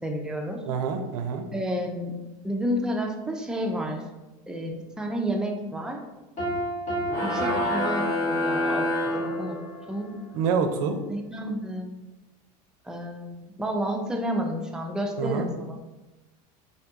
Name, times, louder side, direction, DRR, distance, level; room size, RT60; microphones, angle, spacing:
voice 1, 0.0-0.6 1.5-2.1 2.4-4.0 4.5-6.0 7.2-9.6 9.9-10.1 11.1-11.9 12.8-15.8, equal, 5° right, 1 dB, 0.3 m, -30 dB
voice 2, 0.7-1.5 10.3-11.0 15.2-15.5, right 6 dB, 75° right, 6 dB, 0.4 m, -26 dB
Piano, 6.4-8.9, right 1 dB, 40° left, 1.1 m, -31 dB
sound 1, 7.1-10.0, left 1 dB, 15° left, 0.9 m, -27 dB
2.6 x 2.2 x 2.7 m, 1.1 s
supercardioid pair, 100°, 20 cm